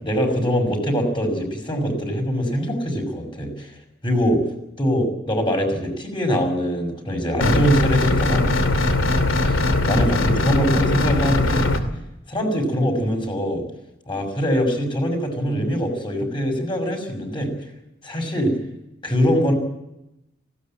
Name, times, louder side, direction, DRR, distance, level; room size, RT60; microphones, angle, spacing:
voice 1, 0.0-3.7 4.0-4.4 4.8-8.5 9.5-11.7 12.3-13.6 14.1-17.5 18.0-18.5 19.0-19.5, equal, 25° left, 4 dB, 5.9 m, -23 dB
sound 1, 7.4-11.8, left 2 dB, 85° left, 2.5 m, -20 dB
19.5 x 17.0 x 9.0 m, 0.88 s
head